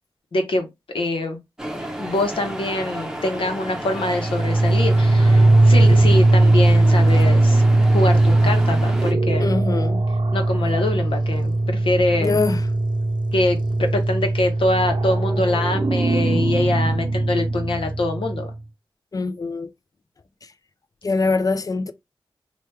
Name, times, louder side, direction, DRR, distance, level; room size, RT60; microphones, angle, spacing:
voice 1, 0.3-0.7 0.9-1.4 2.0-7.6 7.9-9.6 10.3-12.4 13.3-18.5, left 2 dB, 80° left, 0.9 m, -24 dB
sound 1, 1.6-9.1, right 1 dB, 5° right, 0.8 m, -32 dB
sound 2, 4.0-18.6, right 2 dB, 60° right, 0.6 m, -19 dB
voice 2, 9.4-10.0 12.2-12.6 19.1-19.7 21.0-21.9, left 3 dB, 40° left, 0.4 m, -23 dB
3.0 x 2.3 x 3.2 m
cardioid pair, 50°, 9 cm